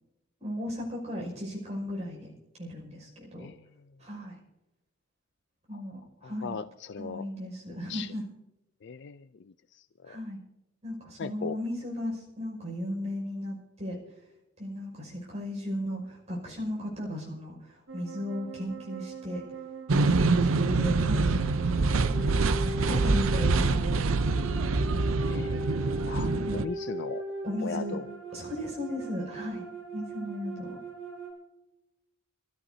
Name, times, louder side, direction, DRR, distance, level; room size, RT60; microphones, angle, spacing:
voice 1, 0.4-2.3 2.6-3.5 4.0-4.4 5.7-6.5 7.0-8.2 10.1-10.4 10.8-14.0 14.6-19.4 20.1-21.7 22.0-23.9 26.0-26.6 27.4-28.0 28.3-29.6 29.9-30.8, left 1 dB, 35° right, -2 dB, 5.7 m, -36 dB
voice 2, 6.2-7.3 7.7-8.1 8.8-10.2 11.2-11.6 25.3-25.8 26.1-27.2 27.6-28.1, left 5 dB, 60° left, 12 dB, 0.4 m, -39 dB
sound 1, 17.9-31.3, right 2 dB, 65° right, 5.4 m, -39 dB
sound 2, 19.9-26.7, right 3 dB, 85° right, 0.6 m, -25 dB
27.0 x 14.0 x 2.8 m, 0.97 s
head